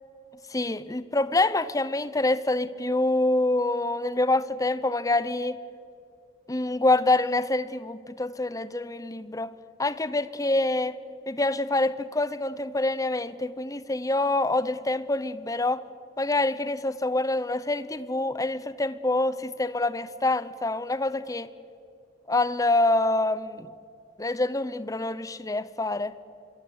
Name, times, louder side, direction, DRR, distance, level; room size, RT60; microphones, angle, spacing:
voice 1, 0.5-5.6 6.5-9.5 9.8-11.0 11.3-15.8 16.2-21.5 22.3-23.7 24.2-26.1, left 2 dB, 20° left, 15 dB, 0.9 m, -26 dB
25.5 x 22.5 x 8.2 m, 2.6 s
head